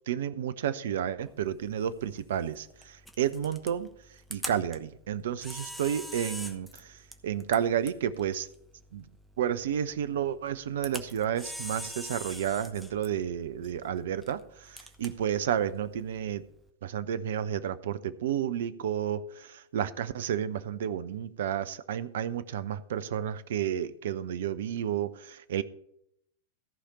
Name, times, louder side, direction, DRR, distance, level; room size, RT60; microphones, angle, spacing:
voice 1, 0.1-3.9 4.3-8.5 8.9-9.1 9.4-16.4 16.8-25.6, right 9 dB, 60° right, 13 dB, 0.5 m, -31 dB
Camera, 1.2-16.7, equal, ahead, 1.1 m, -45 dB
14.5 x 4.9 x 7.0 m, 0.77 s
figure-of-eight pair, 90°, 0 cm